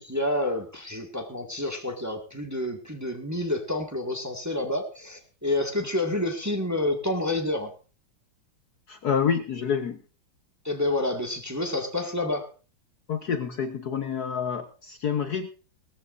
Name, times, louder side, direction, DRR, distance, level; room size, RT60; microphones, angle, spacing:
voice 1, 0.0-7.7 10.6-12.5, left 1 dB, 10° right, 4 dB, 1.7 m, -29 dB
voice 2, 8.9-10.0 13.1-15.5, left 7 dB, 55° left, 9 dB, 1.4 m, -28 dB
18.0 x 14.0 x 2.6 m, 0.35 s
omnidirectional pair, 2.3 m